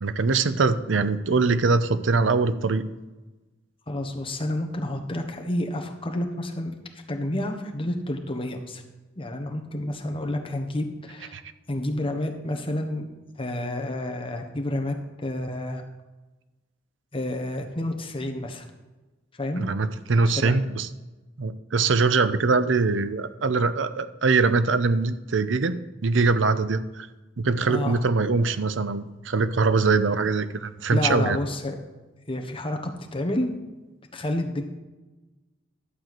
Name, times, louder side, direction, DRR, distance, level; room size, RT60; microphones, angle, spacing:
voice 1, 0.0-2.8 11.3-11.4 19.6-20.9 21.4-25.8 26.0-27.1 27.4-31.4, right 4 dB, 75° right, 13 dB, 0.6 m, -22 dB
voice 2, 3.9-6.7 7.1-8.8 9.2-11.4 11.7-13.1 13.4-15.8 17.1-18.6 19.3-19.7 20.3-20.5 27.7-28.0 28.4-28.5 30.9-31.8 32.3-33.5 34.1-34.6, left 1 dB, 30° left, 3 dB, 1.2 m, -29 dB
11.5 x 4.5 x 7.8 m, 1.2 s
head